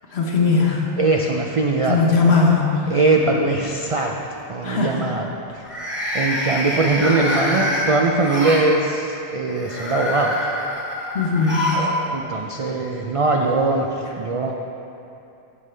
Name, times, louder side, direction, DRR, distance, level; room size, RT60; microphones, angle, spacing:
voice 1, 0.1-0.9 1.8-3.0 4.6-5.0 11.1-12.0, left 4 dB, 65° left, -1 dB, 1.3 m, -19 dB
voice 2, 1.0-2.0 2.9-4.2 4.5-5.3 5.5-5.6 6.1-10.5 12.1-14.5, right 3 dB, 55° right, 1 dB, 0.3 m, -21 dB
sound 1, 2.5-2.7 3.1-3.5 5.6-8.7 9.5-11.9 12.2-12.3 13.4-13.5, left 1 dB, 10° right, 1.4 m, -26 dB
14.5 x 5.3 x 3.3 m, 2.8 s
omnidirectional pair, 1.2 m